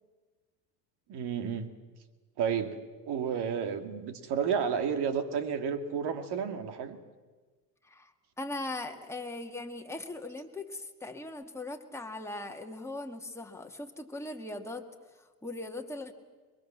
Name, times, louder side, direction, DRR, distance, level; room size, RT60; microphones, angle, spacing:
voice 1, 1.1-1.7 2.4-2.8 3.0-7.0, right 7 dB, 55° right, 9 dB, 2.4 m, -31 dB
voice 2, 8.4-14.9 15.2-16.1, left 2 dB, 5° left, 2 dB, 2.1 m, -39 dB
22.5 x 22.5 x 7.4 m, 1.3 s
hypercardioid pair, 85°, 49 cm